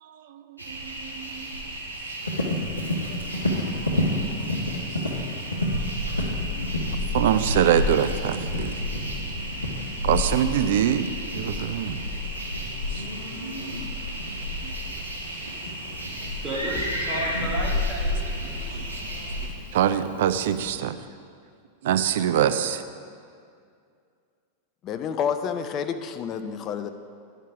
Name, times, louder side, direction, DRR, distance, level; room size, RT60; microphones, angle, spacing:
voice 1, 0.0-1.7 3.1-3.2 4.9-5.0 6.2-6.7 7.1-8.8 10.0-12.0 12.9-13.0 14.6-14.7 18.7-18.9 19.7-21.0 21.8-22.8, right 10 dB, 55° right, 10 dB, 0.4 m, -25 dB
sound 1, 0.6-19.5, left 1 dB, 80° right, 1.5 m, -32 dB
Livestock farm animals working animals, 2.2-20.7, left 1 dB, 80° left, 1.0 m, -32 dB
voice 2, 16.4-19.1, right 1 dB, 15° right, -6 dB, 2.2 m, -34 dB
voice 3, 24.8-26.9, left 7 dB, 35° left, 8 dB, 0.5 m, -29 dB
11.0 x 4.5 x 5.0 m, 2.3 s
figure-of-eight pair, 90°, 0 cm